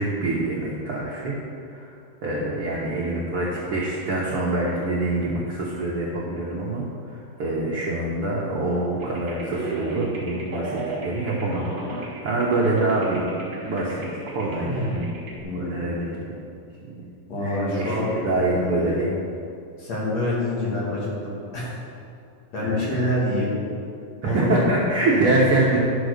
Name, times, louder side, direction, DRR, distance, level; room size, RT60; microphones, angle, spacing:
voice 1, 0.0-1.3 1.7-1.9 2.2-13.3 13.6-14.8 15.5-16.4 16.8-17.1 17.4-19.2 22.6-23.1 24.2-25.8, right 2 dB, 90° right, -5 dB, 1.2 m, -25 dB
sound 1, 9.0-15.4, right 2 dB, 55° right, 0.7 m, -32 dB
voice 2, 15.4-15.8 17.3-18.1 18.5-19.1 19.8-21.7 22.5-23.5 24.2-24.7 25.1-25.4, left 1 dB, 50° left, -6 dB, 3.2 m, -26 dB
11.5 x 6.0 x 6.5 m, 2.5 s
omnidirectional pair, 4.4 m